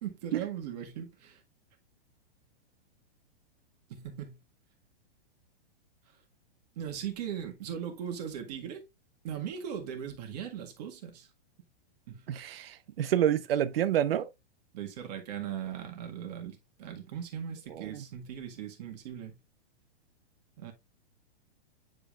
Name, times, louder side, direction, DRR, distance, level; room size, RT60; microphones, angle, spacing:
voice 1, 0.0-1.4 3.9-4.4 6.8-8.8 9.2-11.3 12.1-12.2 14.7-19.4 20.6-20.7, right 9 dB, 40° right, 1.7 m, -39 dB
voice 2, 12.3-12.7 13.0-14.3, right 10 dB, 60° right, 0.7 m, -27 dB
9.4 x 5.3 x 2.4 m
hypercardioid pair, 170°, 33 cm